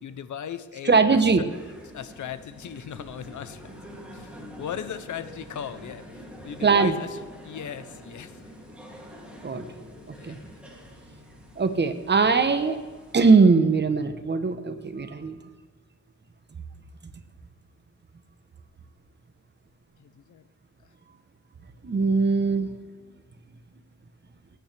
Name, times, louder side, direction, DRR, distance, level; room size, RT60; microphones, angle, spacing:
voice 1, 0.0-1.5 1.9-6.0 6.4-8.4 10.2-10.4 20.0-20.4, left 9 dB, 70° left, 12 dB, 0.8 m, -38 dB
voice 2, 0.8-1.5 6.6-7.0 9.4-9.7 10.1-10.4 11.6-12.8 13.1-15.4 21.8-22.7, right 4 dB, 35° right, 9 dB, 1.0 m, -21 dB
sound 1, 1.5-13.3, equal, 5° right, 2.7 m, -46 dB
18.0 x 9.0 x 3.4 m, 1.4 s
cardioid pair, 85°, 31 cm